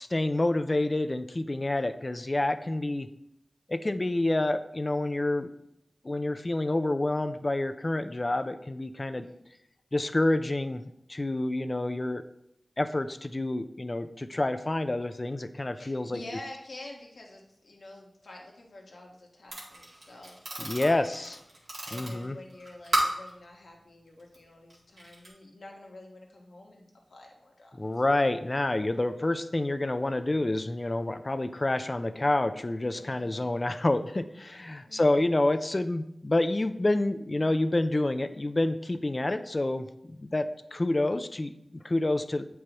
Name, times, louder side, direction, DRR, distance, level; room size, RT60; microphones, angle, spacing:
voice 1, 0.0-3.1 3.7-5.5 6.0-9.3 9.9-10.8 11.1-12.2 12.8-16.2 20.6-21.4 21.9-22.4 27.8-42.5, left 2 dB, 35° left, 11 dB, 0.4 m, -28 dB
voice 2, 15.8-21.2 21.5-27.7 33.0-33.5 34.8-35.3, left 2 dB, 80° left, -1 dB, 1.4 m, -48 dB
sound 1, 19.5-23.3 24.2-24.4 24.7-25.3, right 1 dB, 85° right, 2.0 m, -34 dB
8.3 x 4.7 x 3.0 m, 0.80 s
wide cardioid pair, 55°, 0 cm